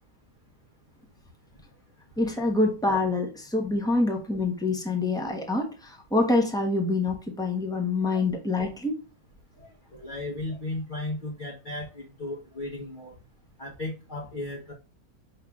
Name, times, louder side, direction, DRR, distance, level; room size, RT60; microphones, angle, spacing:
voice 1, 2.2-9.0, left 2 dB, 5° left, 2 dB, 0.6 m, -26 dB
voice 2, 9.6-13.2 13.6-14.7, left 2 dB, 40° left, -3 dB, 1.0 m, -35 dB
5.5 x 3.3 x 2.3 m, 0.33 s
omnidirectional pair, 1.6 m